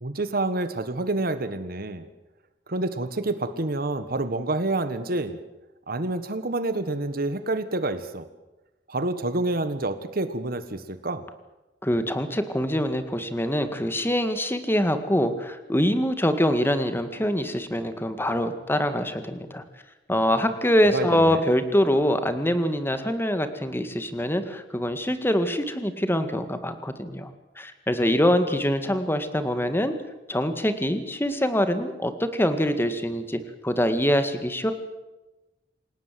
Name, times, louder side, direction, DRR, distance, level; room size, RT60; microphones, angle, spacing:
voice 1, 0.0-2.1 2.7-5.4 5.9-8.3 8.9-11.2 20.9-21.4, right 2 dB, 55° right, 11 dB, 1.5 m, -28 dB
voice 2, 11.8-19.6 20.1-27.3 27.6-29.9 30.3-34.7, equal, 15° left, 9 dB, 2.0 m, -24 dB
28.0 x 17.5 x 7.7 m, 1.0 s
head